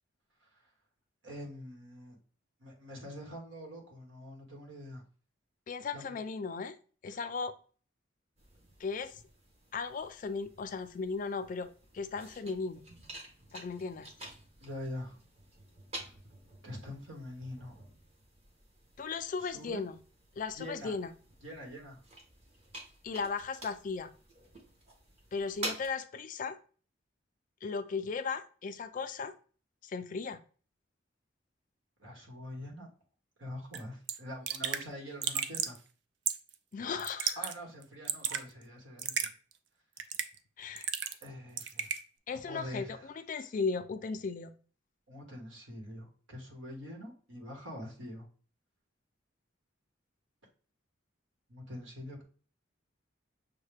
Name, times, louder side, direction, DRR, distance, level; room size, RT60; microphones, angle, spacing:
voice 1, 1.2-2.2 2.6-5.0 5.9-6.2 7.1-7.2 14.6-15.2 15.9-16.1 16.6-17.7 19.4-19.8 20.5-21.0 21.4-22.0 32.0-32.9 33.4-35.8 37.4-39.1 41.2-41.9 42.3-43.1 45.1-48.3 51.5-52.2, left 1 dB, 85° right, 0 dB, 1.3 m, -44 dB
voice 2, 5.7-6.8 7.0-7.5 8.8-9.1 9.7-12.8 13.5-14.1 19.0-19.9 20.4-21.1 23.0-24.1 25.3-26.6 27.6-29.3 29.8-30.4 36.7-37.4 40.6-40.9 42.3-44.5, left 4 dB, 40° left, 10 dB, 0.3 m, -36 dB
sound 1, 8.4-25.9, right 1 dB, 35° right, 1.0 m, -49 dB
Raindrop / Drip, 33.7-33.8 34.1-34.2 34.5-34.8 35.2-35.8 36.3-36.5 37.0-37.5 37.8-38.4 39.0-39.3 40.0-40.4 40.8-41.3 41.6-42.0, right 8 dB, 65° right, 0.4 m, -33 dB
6.2 x 2.1 x 3.3 m, 0.40 s
head